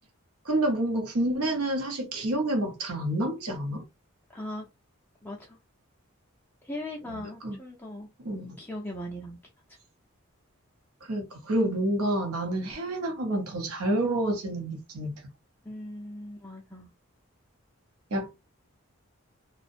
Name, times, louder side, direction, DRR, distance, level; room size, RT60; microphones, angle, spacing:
voice 1, 0.4-3.8 7.1-7.6 8.2-8.6 11.0-15.2 18.1-18.4, right 1 dB, 80° right, 0.7 m, -29 dB
voice 2, 4.3-4.7 5.2-5.6 6.6-8.1 8.6-9.4 15.6-16.9, left 1 dB, 10° left, 0.4 m, -39 dB
2.5 x 2.1 x 2.4 m
head